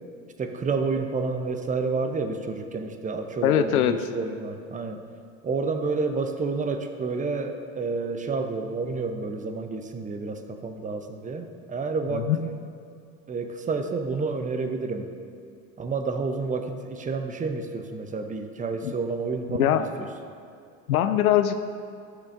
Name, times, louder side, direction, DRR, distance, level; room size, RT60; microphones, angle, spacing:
voice 1, 0.4-5.0 5.4-12.6 13.3-15.1 15.8-20.1, right 4 dB, 20° right, 6 dB, 0.8 m, -29 dB
voice 2, 3.4-4.0 12.1-12.4 18.8-18.9 19.6-19.8 20.9-21.6, left 11 dB, 80° left, 10 dB, 0.6 m, -21 dB
14.5 x 6.6 x 2.6 m, 2.4 s
hypercardioid pair, 75°, 43 cm